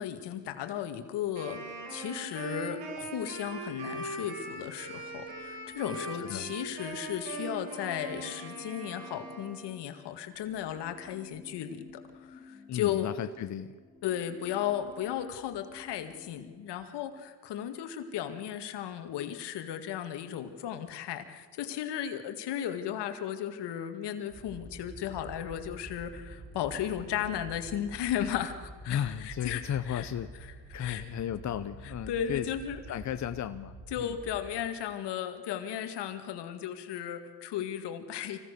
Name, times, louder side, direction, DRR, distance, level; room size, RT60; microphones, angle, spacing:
voice 1, 0.0-1.6 1.9-13.1 14.0-29.6 29.9-30.0 30.8-31.0 32.1-32.8 33.9-38.4, left 10 dB, 75° left, 7 dB, 2.2 m, -35 dB
Wind instrument woodwind instrument, 1.3-9.7, right 3 dB, 75° right, 6.0 m, -41 dB
sound 1, 3.7-16.9, left 5 dB, 15° left, 2.3 m, -55 dB
voice 2, 6.2-6.5 12.7-13.7 28.9-30.3 30.7-32.5 32.9-34.2, left 10 dB, 45° left, 10 dB, 0.8 m, -34 dB
sound 2, 24.3-34.4, right 2 dB, 25° right, 6.5 m, -48 dB
25.5 x 16.5 x 6.7 m, 1.4 s
cardioid pair, 105°, 42 cm